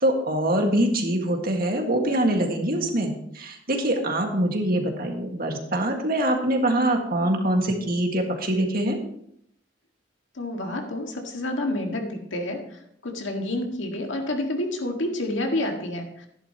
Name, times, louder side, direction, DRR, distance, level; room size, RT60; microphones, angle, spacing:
voice 1, 0.0-9.0, right 1 dB, 50° right, 2 dB, 1.9 m, -24 dB
voice 2, 10.3-16.3, left 1 dB, 80° left, 2 dB, 1.9 m, -29 dB
12.5 x 11.0 x 3.0 m, 0.72 s
head